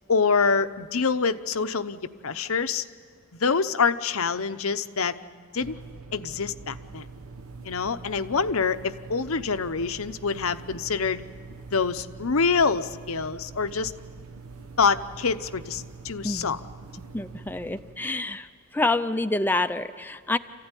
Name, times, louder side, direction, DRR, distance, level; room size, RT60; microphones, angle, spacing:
voice 1, 0.1-2.8 3.4-5.1 5.5-5.8 6.1-7.1 7.6-11.2 11.7-13.9 14.8-16.6, left 5 dB, 80° left, 11 dB, 0.8 m, -26 dB
sound 1, 5.6-18.0, right 4 dB, 85° right, 1.1 m, -44 dB
voice 2, 16.2-16.6 17.1-18.5 18.7-20.4, left 2 dB, 10° left, 9 dB, 0.5 m, -27 dB
27.5 x 15.5 x 9.8 m, 2.1 s
head